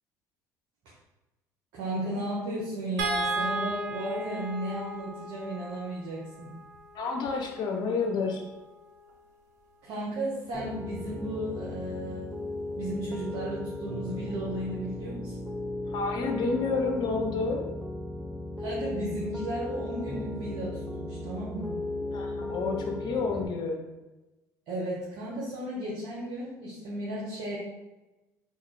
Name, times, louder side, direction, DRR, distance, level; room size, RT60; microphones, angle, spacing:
voice 1, 1.7-6.5 9.8-12.4 12.7-15.5 18.6-21.7 24.7-27.6, right 1 dB, 65° right, -6 dB, 0.9 m, -35 dB
sound 1, 3.0-9.3 10.8-11.0 11.4-11.5, right 2 dB, 85° right, 0.4 m, -36 dB
voice 2, 6.9-8.4 15.9-17.6 22.1-23.8, left 4 dB, 55° left, 2 dB, 0.8 m, -29 dB
Piano, 10.5-23.5, left 1 dB, ahead, 0.6 m, -36 dB
3.7 x 2.4 x 3.1 m, 1.1 s
hypercardioid pair, 60°, 9 cm